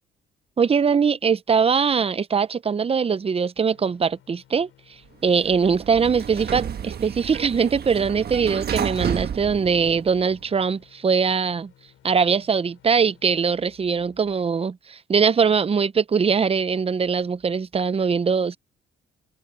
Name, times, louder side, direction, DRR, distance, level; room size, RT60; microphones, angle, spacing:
voice 1, 0.6-4.7 5.2-11.7 12.0-18.6, right 6 dB, 30° right, 0.7 m, -22 dB
sound 1, 3.7-14.4, left 12 dB, 80° left, 6.3 m, -57 dB
Sliding door, 5.2-10.5, right 8 dB, 55° right, 1.4 m, -31 dB
open air
cardioid pair, 90°, 20 cm